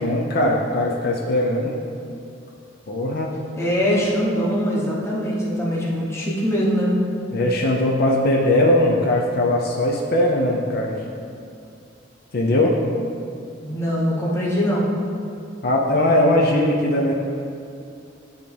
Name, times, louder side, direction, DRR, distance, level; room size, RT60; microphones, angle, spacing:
voice 1, 0.0-1.7 2.9-3.3 7.3-11.0 12.3-12.8 15.6-17.1, left 1 dB, 55° left, -2 dB, 0.6 m, -20 dB
voice 2, 3.6-6.9 13.6-14.9, equal, 15° left, -6 dB, 1.0 m, -22 dB
10.0 x 3.5 x 3.3 m, 2.5 s
head